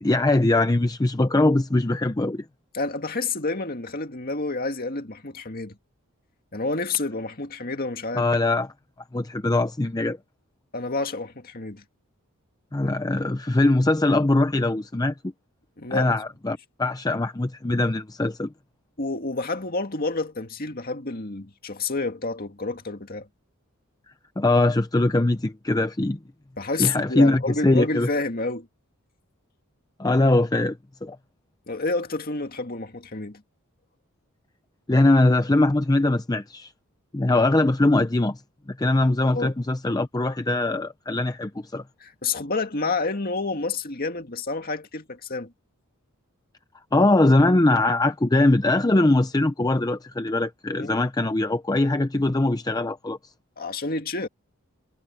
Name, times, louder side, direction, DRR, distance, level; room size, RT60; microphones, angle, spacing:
voice 1, 0.0-2.4 8.2-8.7 9.1-10.2 12.7-15.1 15.9-18.5 24.4-26.2 26.8-28.1 30.0-31.2 34.9-36.7 37.1-38.4 38.7-41.8 46.9-53.2, left 2 dB, 15° left, 0.6 m, -21 dB
voice 2, 2.7-5.8 6.5-8.3 10.7-11.8 15.8-16.2 19.0-23.3 26.6-28.7 31.7-33.4 39.3-39.5 42.0-45.5 50.8-51.0 53.6-54.3, left 3 dB, 40° left, 2.1 m, -29 dB
head